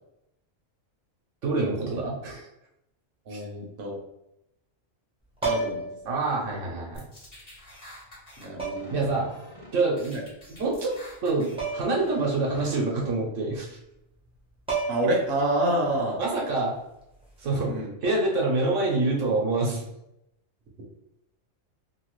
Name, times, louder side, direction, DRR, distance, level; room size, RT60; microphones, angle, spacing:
voice 1, 1.4-2.4 3.3-3.4 6.1-7.1 8.9-9.3 9.7-10.2 10.6-11.0 11.2-13.8 16.2-16.7 17.4-17.7 18.0-19.8, right 3 dB, 75° right, -2 dB, 1.1 m, -26 dB
voice 2, 3.3-4.0 5.4-5.9 8.4-9.2 10.1-10.2 14.9-16.2 17.7-17.9, right 1 dB, 55° right, -2 dB, 0.9 m, -28 dB
sound 1, 5.4-6.0 7.3-7.4 8.6-9.0 11.6-12.0 12.3-12.4 14.3-14.4 14.7-15.3 17.2-17.4, right 4 dB, 5° right, 0.5 m, -30 dB
sound 2, 6.9-8.5 8.8-9.7 10.0-11.6 11.9-12.8, left 1 dB, 30° left, 0.8 m, -47 dB
2.9 x 2.3 x 3.0 m, 0.85 s
omnidirectional pair, 1.3 m